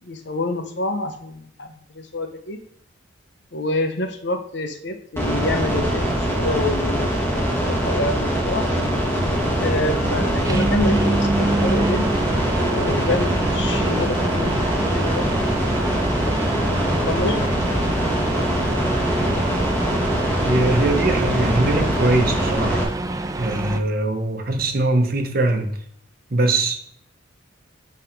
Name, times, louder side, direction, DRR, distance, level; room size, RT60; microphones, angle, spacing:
voice 1, 0.0-2.6 3.5-8.7 9.6-12.1 12.6-15.2 15.6-17.5, left 2 dB, 55° left, 6 dB, 0.9 m, -28 dB
sound 1, 5.2-22.8, equal, 10° left, 1.9 m, -22 dB
sound 2, 9.1-23.8, right 2 dB, 15° right, 0.4 m, -27 dB
voice 2, 20.4-22.9 23.4-25.7 26.3-26.8, right 2 dB, 45° right, 5 dB, 1.0 m, -22 dB
9.8 x 3.6 x 4.6 m, 0.67 s
head